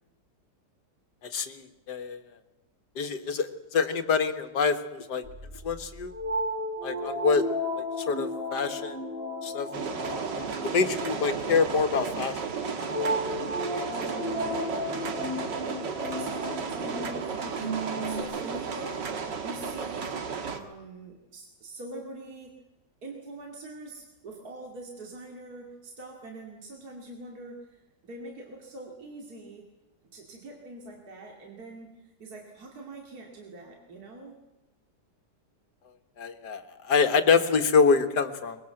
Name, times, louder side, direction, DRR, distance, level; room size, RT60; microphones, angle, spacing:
voice 1, 1.2-2.2 3.0-5.2 5.6-6.1 6.8-7.4 8.1-9.0 9.4-9.7 10.6-12.4 12.6-12.7 36.2-38.6, left 5 dB, 70° left, 8 dB, 2.0 m, -26 dB
sound 1, 5.2-18.2, left 1 dB, 35° right, 5.8 m, -34 dB
sound 2, 9.7-20.6, right 5 dB, 85° right, 2.3 m, -33 dB
voice 2, 13.8-14.6 16.2-19.1 19.4-20.1 20.5-22.6 23.0-29.6 30.1-34.4, right 2 dB, 60° right, 0 dB, 3.0 m, -44 dB
22.0 x 21.5 x 7.8 m, 0.99 s
omnidirectional pair, 1.9 m